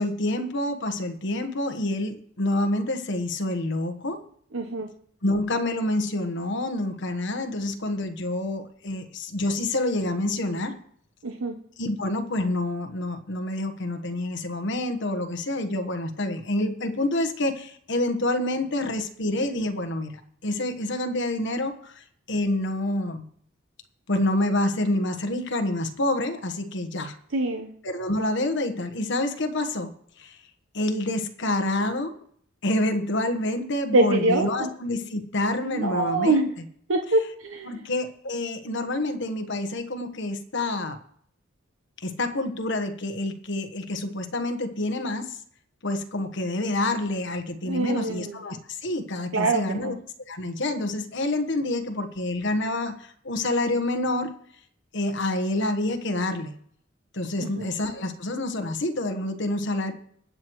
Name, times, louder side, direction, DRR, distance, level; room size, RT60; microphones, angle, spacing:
voice 1, 0.0-4.2 5.2-10.8 11.8-20.1 20.4-23.2 24.1-27.2 27.8-29.9 30.2-30.4 30.7-32.1 32.6-36.7 37.6-41.0 42.0-45.4 45.8-50.0 50.3-54.3 54.9-56.5 57.1-59.9, left 1 dB, 60° left, 8 dB, 1.2 m, -27 dB
voice 2, 4.5-4.9 11.2-11.5 27.3-27.7 33.9-34.7 35.6-36.5 36.9-37.7 47.6-48.4 49.3-50.0 57.6-57.7, right 2 dB, 70° right, 4 dB, 0.9 m, -24 dB
20.5 x 7.9 x 3.1 m, 0.63 s
head